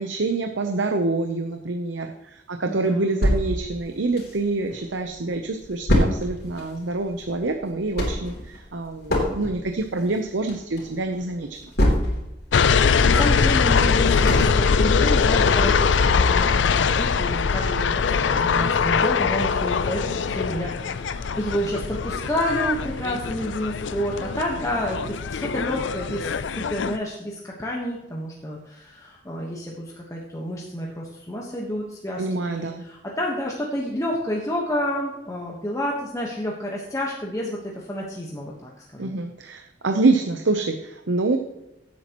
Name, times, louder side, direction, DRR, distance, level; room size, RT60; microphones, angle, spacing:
voice 1, 0.0-11.6 32.2-32.8 39.0-41.4, right 3 dB, 80° right, 5 dB, 0.8 m, -26 dB
voice 2, 2.7-3.1 12.8-39.1, equal, 20° left, -3 dB, 1.3 m, -30 dB
sound 1, 3.2-4.8 5.1-5.2 5.4-12.4 12.8-15.0 15.4-15.5 15.9-16.0, equal, 60° left, 3.2 m, -25 dB
sound 2, 12.5-27.0, left 5 dB, 80° left, 0.5 m, -22 dB
15.5 x 8.6 x 3.0 m, 0.92 s
head